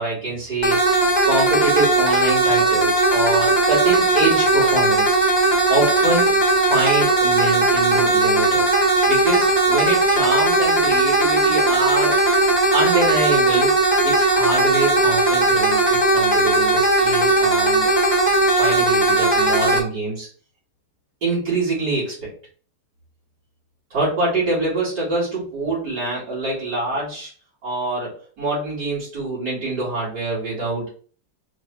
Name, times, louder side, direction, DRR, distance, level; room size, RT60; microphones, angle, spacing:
voice 1, 0.0-5.2 5.7-6.3 6.6-8.6 9.1-13.7 14.0-17.9 18.5-20.3 21.2-22.3 23.9-27.3 27.6-30.8, right 2 dB, 80° right, -9 dB, 2.6 m, -25 dB
sound 1, 0.6-19.8, right 2 dB, 30° left, 1.2 m, -18 dB
4.5 x 2.8 x 3.2 m, 0.42 s
omnidirectional pair, 1.8 m